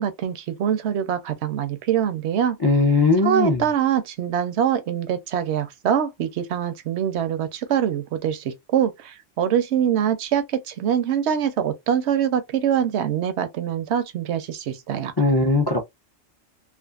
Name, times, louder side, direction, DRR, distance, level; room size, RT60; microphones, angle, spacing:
voice 1, 0.0-2.6 3.2-15.1, right 9 dB, 70° right, 0.8 m, -24 dB
voice 2, 2.6-3.6 15.2-15.8, left 3 dB, 35° left, 0.4 m, -19 dB
2.5 x 2.4 x 2.3 m
omnidirectional pair, 1.3 m